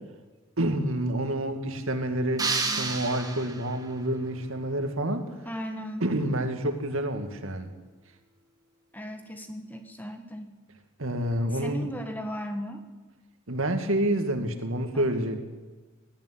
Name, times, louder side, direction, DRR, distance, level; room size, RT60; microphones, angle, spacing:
voice 1, 0.6-2.5 2.8-5.3 6.0-7.7 11.0-11.9 13.5-15.4, right 1 dB, 75° right, 6 dB, 2.3 m, -28 dB
sound 1, 2.4-3.9, right 4 dB, 15° right, 1.8 m, -30 dB
voice 2, 5.4-6.0 8.9-10.5 11.5-12.8 14.9-15.4, equal, 10° left, 6 dB, 1.4 m, -37 dB
19.0 x 14.5 x 9.8 m, 1.3 s
head